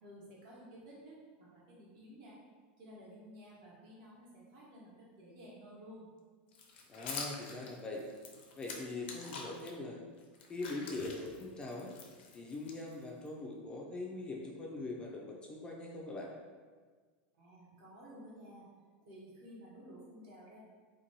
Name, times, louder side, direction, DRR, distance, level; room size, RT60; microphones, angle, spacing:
voice 1, 0.0-2.3 2.8-6.1 17.4-18.7 19.0-20.6, equal, 60° right, -5 dB, 1.0 m, -53 dB
sound 1, 6.5-9.7 10.2-13.3, left 4 dB, 80° left, 0.5 m, -46 dB
voice 2, 6.9-8.0 8.5-10.0 10.5-11.9 12.3-16.3, left 2 dB, 15° left, -2 dB, 0.3 m, -42 dB
2.6 x 2.2 x 2.9 m, 1.5 s
supercardioid pair, 140°, 6 cm